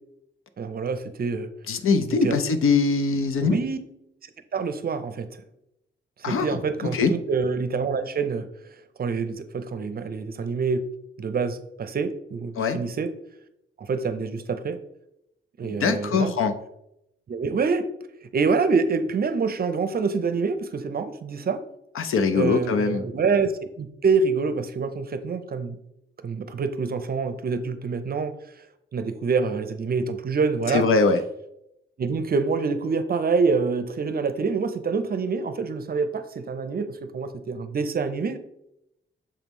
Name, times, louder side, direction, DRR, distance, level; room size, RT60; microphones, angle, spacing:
voice 1, 0.6-1.5 2.2-2.4 3.4-3.8 4.5-5.3 6.2-8.5 9.0-10.8 11.2-13.1 13.8-14.8 15.6-16.3 17.3-17.9 18.3-21.6 22.3-25.8 26.2-28.3 28.9-30.9 32.0-38.4, right 4 dB, 45° right, 10 dB, 0.5 m, -26 dB
voice 2, 1.7-3.6 6.2-6.5 6.8-7.1 12.6-12.8 15.6-16.5 22.0-23.0 30.7-31.2, left 4 dB, 85° left, 9 dB, 0.7 m, -22 dB
7.1 x 3.1 x 5.3 m, 0.82 s
wide cardioid pair, 140°, 21 cm